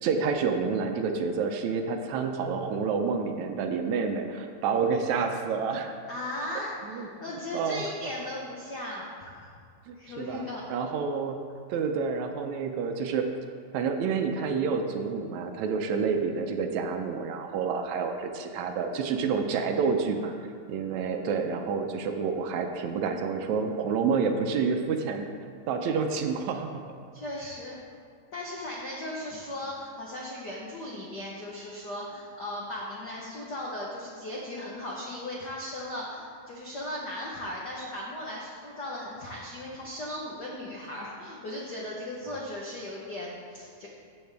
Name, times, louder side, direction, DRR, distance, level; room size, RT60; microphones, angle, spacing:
voice 1, 0.0-5.9 6.8-7.1 7.5-7.9 9.9-11.4 11.7-13.3 13.7-20.3 20.7-25.3 25.7-26.9, right 5 dB, 75° right, 5 dB, 1.9 m, -29 dB
voice 2, 6.1-9.5 10.0-10.7 27.1-27.8 28.3-43.9, left 1 dB, 85° left, -3 dB, 0.9 m, -37 dB
13.5 x 7.8 x 3.4 m, 2.2 s
omnidirectional pair, 3.5 m